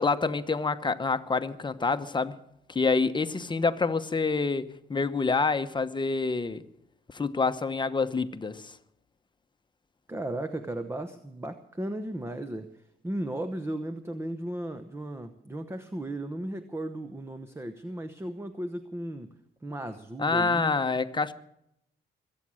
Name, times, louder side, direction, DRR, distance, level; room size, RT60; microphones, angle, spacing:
voice 1, 0.0-2.4 2.7-6.6 7.1-8.7 20.2-21.3, left 4 dB, 25° left, 1.0 m, -27 dB
voice 2, 10.1-19.3 19.6-20.7, right 1 dB, 15° right, 1.0 m, -35 dB
23.0 x 8.7 x 6.3 m
cardioid pair, 90°, 20 cm